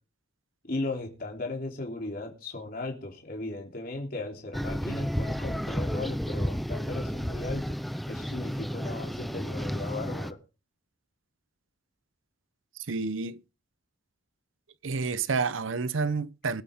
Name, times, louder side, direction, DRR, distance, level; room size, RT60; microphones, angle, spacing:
voice 1, 0.7-7.8 8.1-10.4, left 2 dB, 45° left, 3.2 m, -36 dB
sound 1, 4.5-10.3, equal, ahead, 0.5 m, -32 dB
voice 2, 12.9-13.4 14.8-16.6, right 4 dB, 85° right, 0.7 m, -29 dB
22.5 x 8.5 x 3.6 m
head